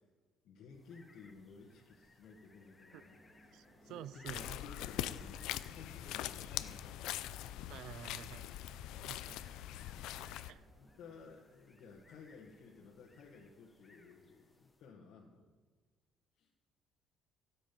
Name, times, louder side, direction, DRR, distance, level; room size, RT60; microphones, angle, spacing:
voice 1, 0.4-3.2 3.8-7.1 7.6-8.1 10.4-15.5 16.4-16.5, left 5 dB, 65° left, -3 dB, 1.7 m, -56 dB
sound 1, 0.7-15.0, left 2 dB, 15° left, 1.3 m, -67 dB
sound 2, 2.9-11.5, equal, 20° right, 4.5 m, -66 dB
voice 2, 3.5-4.6 7.7-8.4 9.1-9.5 10.5-10.7, right 11 dB, 70° right, 18 dB, 0.4 m, -49 dB
sound 3, 4.3-10.5, left 13 dB, 85° left, 0.5 m, -42 dB
16.5 x 7.7 x 5.4 m, 1.4 s
cardioid pair, 135°, 0 cm